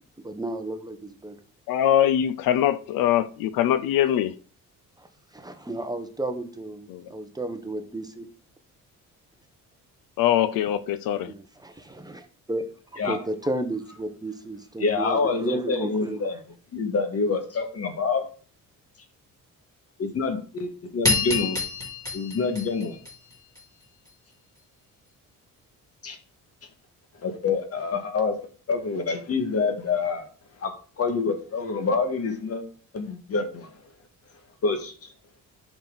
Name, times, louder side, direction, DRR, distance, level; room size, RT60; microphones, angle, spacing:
voice 1, 0.2-1.4 5.0-5.1 5.3-8.3 11.2-12.6 12.9-16.2, right 1 dB, 10° right, 1.1 m, -33 dB
voice 2, 1.7-4.3 6.9-7.0 10.2-11.3, left 11 dB, 90° left, 0.7 m, -22 dB
voice 3, 14.8-16.4 16.7-18.2 20.0-21.6 22.1-23.0 26.0-26.2 27.2-28.4 28.7-30.3 30.6-30.7 31.0-32.6 32.9-33.7 34.6-35.1, left 4 dB, 45° left, 2.0 m, -26 dB
sound 1, 21.0-23.6, left 3 dB, 10° left, 3.9 m, -27 dB
10.5 x 6.1 x 4.1 m
cardioid pair, 120°, 34 cm